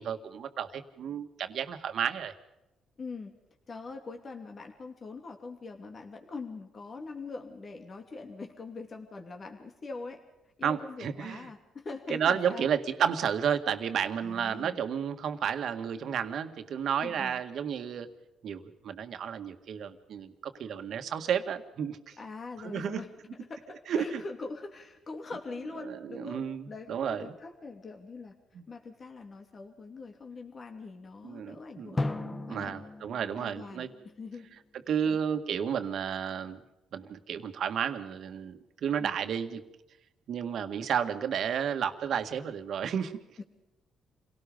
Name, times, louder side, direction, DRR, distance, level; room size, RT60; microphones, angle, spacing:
voice 1, 0.0-2.3 10.6-11.5 12.1-18.1 18.4-22.2 22.6-23.0 23.9-24.2 25.8-27.3 28.5-28.6 31.2-33.9 34.9-36.6 36.9-39.6 40.3-43.2, right 8 dB, 65° right, 7 dB, 1.9 m, -32 dB
voice 2, 3.0-3.3 3.7-10.2 10.6-12.7 14.2-14.8 17.0-17.4 22.2-23.1 23.5-28.3 28.7-32.1 32.5-32.7 33.4-33.9 34.2-34.5 35.0-35.2 39.0-39.2 43.4-43.5, left 3 dB, 40° left, 3 dB, 2.8 m, -43 dB
Drum, 32.0-34.7, left 2 dB, 20° left, 0.9 m, -37 dB
28.0 x 18.0 x 5.3 m, 0.95 s
cardioid pair, 90°, 0 cm